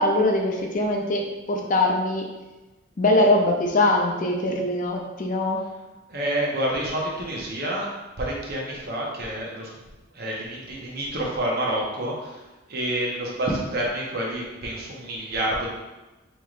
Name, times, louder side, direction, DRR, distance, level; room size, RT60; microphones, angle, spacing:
voice 1, 0.0-2.3 3.0-5.6, left 1 dB, 40° left, 1 dB, 0.4 m, -22 dB
voice 2, 6.1-7.9 8.2-9.9 10.1-12.4 12.7-15.7, right 1 dB, 45° right, -3 dB, 0.9 m, -28 dB
5.6 x 3.1 x 2.5 m, 1.1 s
head